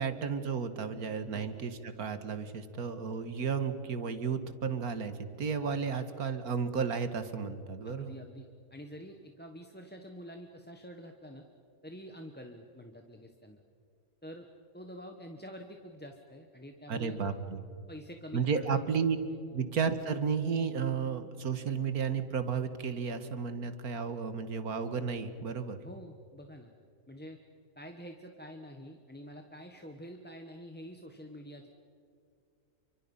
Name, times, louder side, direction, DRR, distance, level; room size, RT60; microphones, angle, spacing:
voice 1, 0.0-8.2 16.9-17.6 18.3-19.2 19.5-25.8, right 6 dB, 90° right, 10 dB, 2.0 m, -33 dB
voice 2, 7.8-11.4 11.8-13.6 14.2-14.5 14.7-17.3 17.9-18.6 19.3-19.4 25.8-26.7 27.1-27.4 27.7-31.7, equal, 5° left, 4 dB, 1.2 m, -47 dB
29.5 x 25.0 x 5.6 m, 2.4 s
omnidirectional pair, 1.5 m